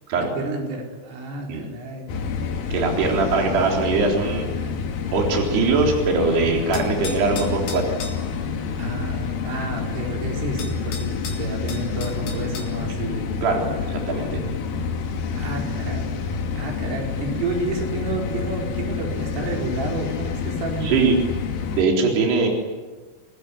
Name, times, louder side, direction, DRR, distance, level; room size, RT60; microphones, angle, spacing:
voice 1, 0.2-2.1 3.0-3.5 8.8-11.1 11.4-13.4 15.3-16.1 16.5-21.1, right 2 dB, 80° right, 0 dB, 7.3 m, -30 dB
sound 1, 2.1-21.8, left 5 dB, 55° left, 3.0 m, -28 dB
voice 2, 2.7-4.5 5.1-7.8 13.4-14.4 20.8-21.3 21.7-22.5, right 4 dB, 55° right, 0 dB, 5.7 m, -21 dB
sound 2, 6.7-8.2 10.1-10.2 10.6-12.7, left 5 dB, 80° left, 6.0 m, -36 dB
27.5 x 20.5 x 9.8 m, 1.3 s
omnidirectional pair, 5.7 m